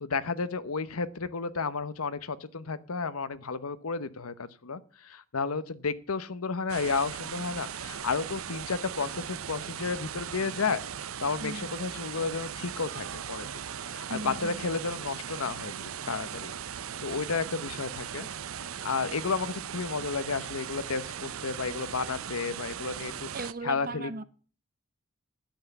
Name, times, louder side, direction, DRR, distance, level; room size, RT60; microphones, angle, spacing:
voice 1, 0.0-10.8 11.2-13.5 13.9-16.5 17.0-18.3 18.8-23.3 23.6-24.1, left 4 dB, 85° left, 0.9 m, -32 dB
sound 1, 6.7-23.5, right 8 dB, 70° right, 0.6 m, -38 dB
voice 2, 11.4-11.7 14.1-14.7 23.3-24.2, right 2 dB, 40° right, 0.8 m, -37 dB
10.5 x 8.1 x 8.3 m
head